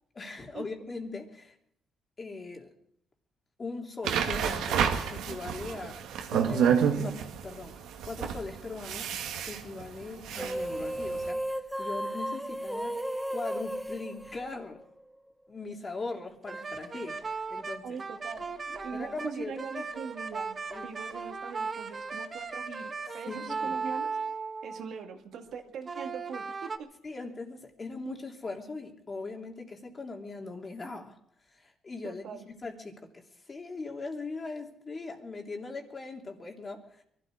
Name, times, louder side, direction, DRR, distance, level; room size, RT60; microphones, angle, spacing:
voice 1, 0.1-1.5 2.2-2.7 3.6-6.0 6.3-9.1 9.5-11.5 11.8-13.0 13.3-14.8 15.5-18.0 18.9-19.8 20.7-20.9 23.3-23.8 27.0-31.2 31.5-37.0, left 3 dB, 35° left, 2 dB, 3.2 m, -40 dB
sound 1, 4.0-11.3, right 8 dB, 90° right, 1.8 m, -29 dB
sound 2, 10.3-15.0, right 1 dB, 5° right, 0.9 m, -34 dB
sound 3, 16.5-25.0 25.8-26.8, right 4 dB, 35° right, 1.3 m, -37 dB
voice 2, 17.8-24.1 24.6-26.9 32.0-32.5, right 6 dB, 70° right, 4 dB, 2.0 m, -42 dB
22.5 x 13.0 x 4.9 m, 0.69 s
cardioid pair, 90°, 0 cm